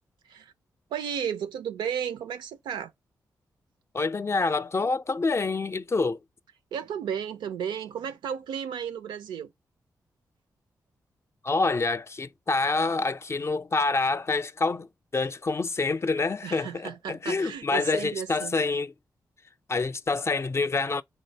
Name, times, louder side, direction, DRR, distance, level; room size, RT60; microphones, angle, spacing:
voice 1, 0.9-2.9 6.7-9.5 16.4-18.5, right 8 dB, 85° right, 0.5 m, -33 dB
voice 2, 3.9-6.2 11.4-18.9 19.7-21.0, left 3 dB, 35° left, 0.4 m, -27 dB
3.1 x 2.6 x 4.4 m
supercardioid pair, 45°, 8 cm